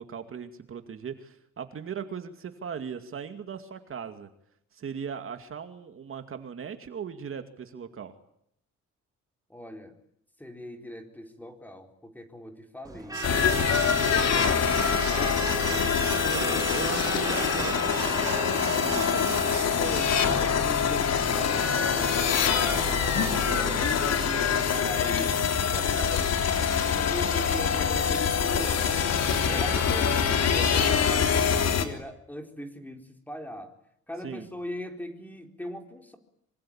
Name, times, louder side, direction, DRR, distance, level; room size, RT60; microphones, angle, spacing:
voice 1, 0.0-4.3 4.7-8.1 16.2-19.4 23.5-23.9 34.2-34.5, right 7 dB, 45° right, 7 dB, 2.4 m, -38 dB
voice 2, 9.5-9.9 10.4-13.2 14.0-15.4 19.8-23.0 23.5-23.7 24.0-33.7 34.1-36.2, equal, 5° left, 5 dB, 4.3 m, -40 dB
Truck / Alarm, 12.8-24.8, right 3 dB, 10° right, 3.0 m, -36 dB
sound 1, 13.1-20.2, right 10 dB, 80° right, 4.4 m, -41 dB
sound 2, 13.2-31.8, left 7 dB, 55° left, 3.5 m, -25 dB
26.0 x 25.5 x 8.9 m, 0.73 s
cardioid pair, 150°, 30 cm